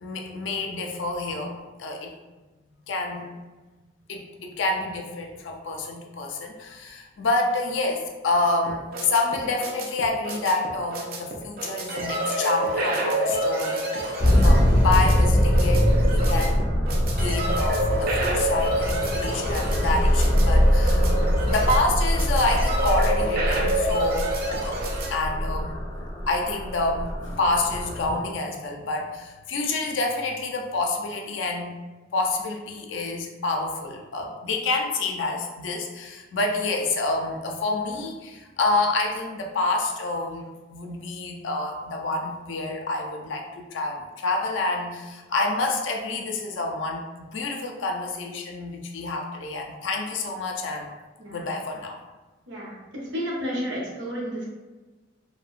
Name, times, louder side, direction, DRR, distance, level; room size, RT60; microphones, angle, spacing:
voice 1, 0.0-2.1 2.9-3.3 4.1-16.6 17.1-21.1 21.5-24.8 25.1-31.7 32.1-50.9 51.3-52.0, left 2 dB, 80° left, 2 dB, 0.4 m, -28 dB
sound 1, 8.7-25.1, right 1 dB, 50° right, 0.4 m, -28 dB
sound 2, 14.2-28.2, equal, 20° left, 0.5 m, -23 dB
voice 2, 51.2-51.5 52.5-54.5, equal, 70° right, -4 dB, 0.8 m, -32 dB
2.8 x 2.1 x 2.4 m, 1.2 s
head